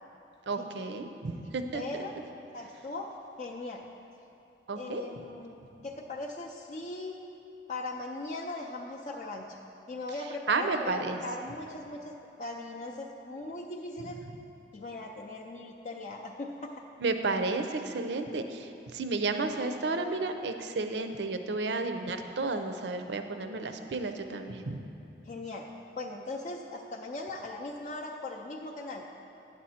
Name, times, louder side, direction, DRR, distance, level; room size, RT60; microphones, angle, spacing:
voice 1, 0.5-1.8 4.7-5.0 10.5-11.2 17.0-18.7 18.9-24.8, right 3 dB, 75° right, 7 dB, 0.6 m, -32 dB
voice 2, 1.7-2.2 2.5-3.1 3.4-3.8 4.7-7.1 7.7-9.5 9.9-12.1 12.4-14.2 14.7-16.7 25.3-25.6 26.0-29.1, left 2 dB, 40° left, -1 dB, 0.4 m, -39 dB
9.7 x 7.6 x 4.2 m, 2.7 s
head